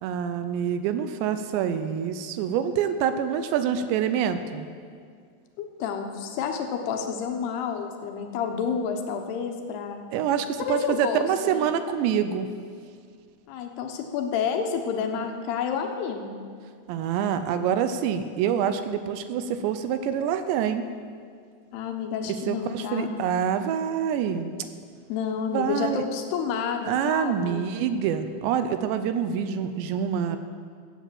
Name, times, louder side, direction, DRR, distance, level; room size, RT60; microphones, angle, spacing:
voice 1, 0.0-4.7 10.1-12.5 16.9-20.8 22.2-24.5 25.5-26.0 26.9-30.4, right 8 dB, 80° right, 10 dB, 2.7 m, -26 dB
voice 2, 5.6-10.1 10.6-11.7 13.5-16.4 21.7-23.1 25.1-27.7, left 6 dB, 70° left, 4 dB, 2.8 m, -30 dB
15.0 x 8.4 x 7.6 m, 2.1 s
omnidirectional pair, 5.4 m